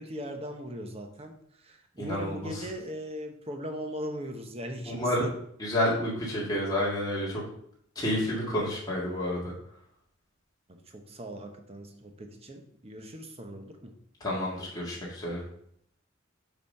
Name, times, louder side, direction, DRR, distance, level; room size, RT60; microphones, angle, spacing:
voice 1, 0.0-5.3 10.7-13.9, equal, 30° right, 4 dB, 0.9 m, -39 dB
voice 2, 2.0-2.7 4.9-5.2 5.6-7.4 8.0-9.5 14.2-15.4, left 1 dB, 20° left, -6 dB, 1.9 m, -30 dB
7.1 x 4.1 x 5.4 m, 0.69 s
head